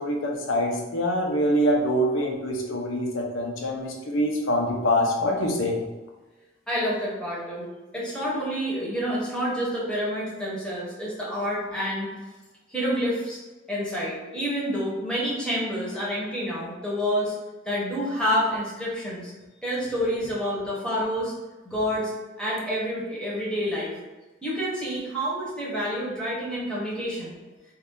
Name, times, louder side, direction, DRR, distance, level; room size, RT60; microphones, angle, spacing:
voice 1, 0.0-5.8, equal, 80° left, 1 dB, 0.6 m, -25 dB
voice 2, 6.7-7.7 7.9-12.1 12.7-13.4 13.7-17.3 17.6-19.3 19.6-21.3 21.6-22.1 22.4-24.0 24.4-27.4, equal, 5° left, -6 dB, 0.9 m, -28 dB
2.6 x 2.3 x 3.6 m, 1.2 s
head